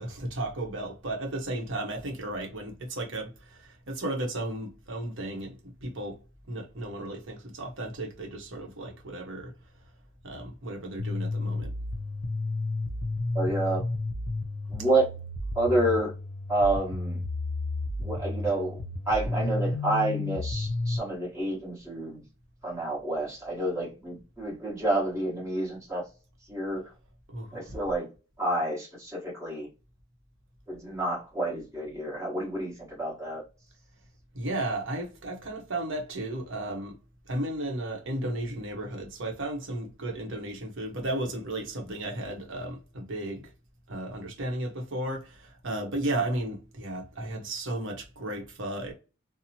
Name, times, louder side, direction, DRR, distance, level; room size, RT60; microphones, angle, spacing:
voice 1, 0.0-6.2 6.5-9.5 10.2-11.7 27.3-27.8 34.3-37.0 37.3-43.5 43.9-48.9, right 1 dB, 55° right, 0.8 m, -34 dB
sound 1, 11.0-21.0, left 2 dB, 70° left, 0.5 m, -32 dB
voice 2, 13.3-13.8 14.7-15.1 15.5-16.1 16.5-17.2 18.0-18.8 19.1-22.2 22.6-26.0 26.5-26.8 27.5-28.1 28.4-29.7 30.7-33.4, right 1 dB, 15° right, 1.1 m, -29 dB
2.8 x 2.0 x 2.7 m
head